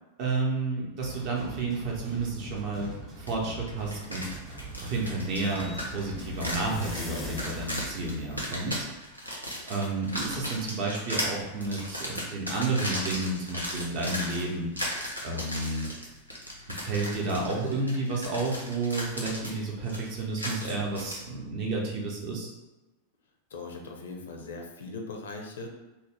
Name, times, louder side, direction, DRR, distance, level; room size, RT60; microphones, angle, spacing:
voice 1, 0.2-2.9 3.2-4.3 4.8-8.9 9.7-14.7 15.2-15.9 16.7-22.5, right 3 dB, 45° right, -2 dB, 0.7 m, -31 dB
sound 1, 1.0-6.5, right 3 dB, 25° right, 1.0 m, -43 dB
sound 2, 3.3-3.4 3.7-21.2, equal, 90° right, 0.5 m, -36 dB
sound 3, 4.1-8.9, left 2 dB, 5° left, 0.5 m, -42 dB
voice 2, 23.5-25.7, left 3 dB, 65° left, 2 dB, 0.5 m, -39 dB
2.7 x 2.1 x 3.2 m, 1.1 s
figure-of-eight pair, 90°, 0 cm